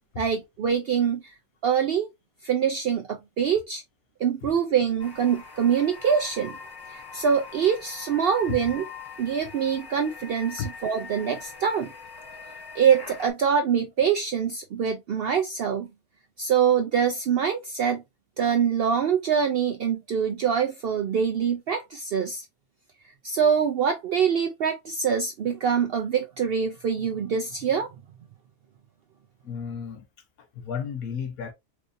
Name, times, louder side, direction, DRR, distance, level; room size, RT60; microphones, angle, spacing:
voice 1, 0.2-1.3 1.6-2.1 2.4-3.8 4.2-6.6 6.9-8.9 9.2-11.9 12.8-15.9 16.4-18.0 18.4-22.4 23.2-27.9, right 7 dB, 70° right, 0.5 m, -24 dB
sound 1, 5.0-13.3, left 5 dB, 25° left, 0.5 m, -43 dB
voice 2, 29.4-30.1 30.4-31.5, left 6 dB, 85° left, 1.3 m, -33 dB
4.5 x 2.6 x 2.4 m
omnidirectional pair, 1.5 m